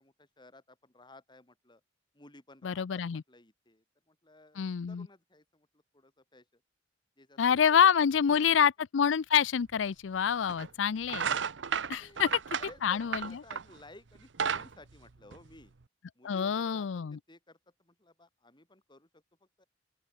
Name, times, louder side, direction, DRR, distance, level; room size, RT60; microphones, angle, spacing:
voice 1, 0.0-1.8 2.1-6.6 7.2-7.4 7.7-7.8 8.3-8.4 12.0-12.3 12.6-15.7 16.2-19.6, left 2 dB, 25° left, 5.4 m, -56 dB
voice 2, 2.6-3.2 4.6-5.1 7.4-11.3 11.9-12.3 12.8-13.4 16.2-17.2, left 7 dB, 85° left, 0.5 m, -27 dB
sound 1, 9.7-9.8 10.5-10.7 11.0-13.8 14.2-15.8, right 7 dB, 75° right, 0.8 m, -33 dB
open air
head